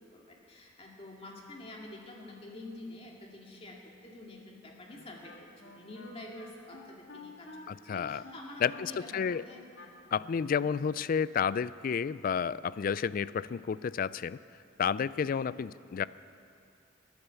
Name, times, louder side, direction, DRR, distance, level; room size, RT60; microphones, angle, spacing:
voice 1, 0.0-7.5 7.9-9.7, left 1 dB, 30° left, -1 dB, 2.3 m, -48 dB
Wind instrument woodwind instrument, 4.9-10.5, left 3 dB, 85° left, 1.9 m, -50 dB
voice 2, 7.7-8.2 8.6-9.4 10.1-14.4 14.8-16.1, left 7 dB, 45° left, 18 dB, 0.3 m, -31 dB
20.5 x 8.9 x 7.0 m, 2.5 s
head